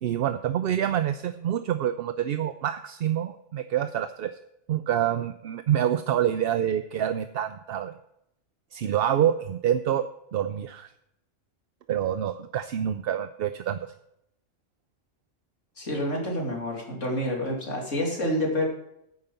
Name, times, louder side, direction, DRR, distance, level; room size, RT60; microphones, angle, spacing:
voice 1, 0.0-4.3 4.7-8.0 8.7-10.9 11.9-13.8, right 10 dB, 60° right, 10 dB, 0.7 m, -27 dB
voice 2, 15.8-18.7, left 1 dB, 85° left, -1 dB, 3.2 m, -28 dB
9.8 x 9.1 x 5.6 m, 0.79 s
omnidirectional pair, 1.3 m